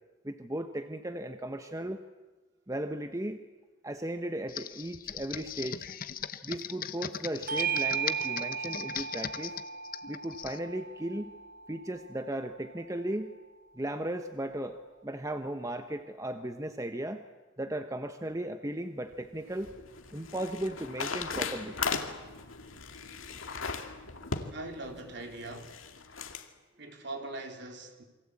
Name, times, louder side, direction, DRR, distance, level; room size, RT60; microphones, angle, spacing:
voice 1, 0.2-2.0 2.7-3.4 3.8-5.9 6.4-9.6 10.1-11.4 11.7-13.3 13.7-17.2 17.6-19.7 20.1-21.8, right 1 dB, 15° right, 1.0 m, -36 dB
Computer keyboard, 4.5-10.6, left 9 dB, 45° left, 0.9 m, -39 dB
Bell / Doorbell, 7.5-12.3, right 6 dB, 40° right, 1.0 m, -35 dB
sound 1, 19.1-26.5, left 5 dB, 80° left, 2.2 m, -38 dB
voice 2, 24.5-25.9 26.8-28.0, right 2 dB, 55° right, 3.8 m, -41 dB
28.0 x 24.5 x 8.6 m
head